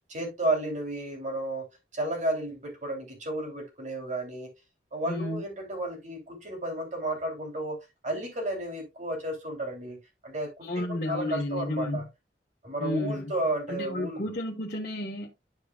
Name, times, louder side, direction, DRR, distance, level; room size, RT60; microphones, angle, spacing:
voice 1, 0.1-1.7 1.9-4.5 4.9-12.0 12.6-14.3, right 1 dB, 45° right, 2.9 m, -33 dB
voice 2, 5.1-5.4 10.6-12.1 12.8-13.3 13.7-15.3, left 1 dB, 50° left, 1.2 m, -32 dB
11.5 x 4.8 x 2.3 m
head